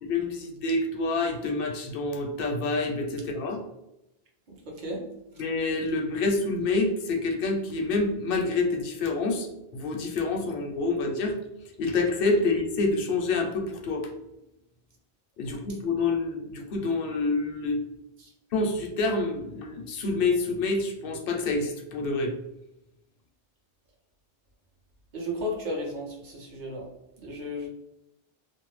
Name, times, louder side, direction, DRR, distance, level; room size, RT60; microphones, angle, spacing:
voice 1, 0.0-3.6 5.4-9.5 9.7-11.4 11.8-14.1 15.4-17.8 18.5-22.3, left 3 dB, 65° left, 1 dB, 0.7 m, -27 dB
voice 2, 25.1-26.8 27.2-27.7, left 1 dB, 50° right, -2 dB, 0.8 m, -33 dB
2.5 x 2.0 x 3.1 m, 0.88 s
omnidirectional pair, 1.0 m